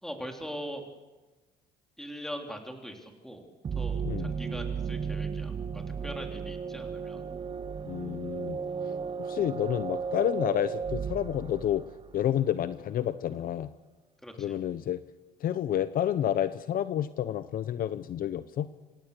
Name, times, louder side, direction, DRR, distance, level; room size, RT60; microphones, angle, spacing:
voice 1, 0.0-0.9 2.0-3.5 3.8-7.2 14.2-14.6, equal, ahead, 3 dB, 3.3 m, -41 dB
sound 1, 3.6-12.3, right 6 dB, 30° right, 0.6 m, -35 dB
voice 2, 7.9-8.6 9.2-11.8 12.1-13.7 14.4-15.0 15.4-18.7, left 11 dB, 60° left, 13 dB, 0.8 m, -29 dB
27.0 x 17.5 x 6.7 m, 1.2 s
cardioid pair, 110°, 17 cm